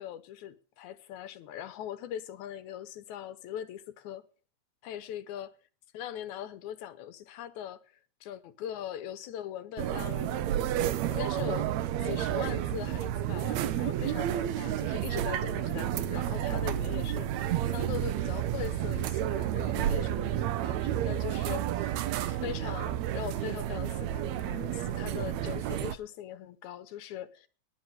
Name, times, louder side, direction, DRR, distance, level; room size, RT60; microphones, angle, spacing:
voice 1, 0.0-4.2 4.8-5.5 5.9-7.8 8.2-10.6 11.1-11.7 12.0-21.9 22.3-27.5, left 10 dB, 80° left, 2.3 m, -41 dB
sound 1, 9.8-26.0, right 11 dB, 75° right, 1.9 m, -31 dB
9.9 x 8.0 x 9.0 m
omnidirectional pair, 3.4 m